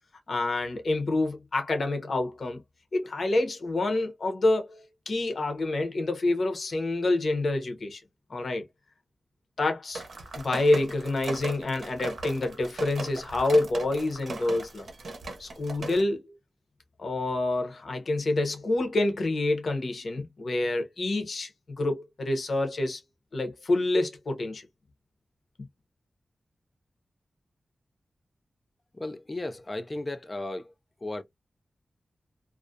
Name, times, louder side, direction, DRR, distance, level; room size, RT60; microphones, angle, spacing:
voice 1, 0.3-2.6 2.9-8.0 8.3-8.6 9.6-10.0 10.3-14.9 15.4-16.3 17.0-21.5 21.8-23.0 23.3-24.7, left 2 dB, 70° left, 0.7 m, -27 dB
sound 1, 9.9-16.0, right 3 dB, 75° right, 0.6 m, -38 dB
voice 2, 29.0-30.7 31.0-31.2, left 2 dB, 30° left, 0.3 m, -35 dB
2.4 x 2.1 x 2.5 m
wide cardioid pair, 85°, 0 cm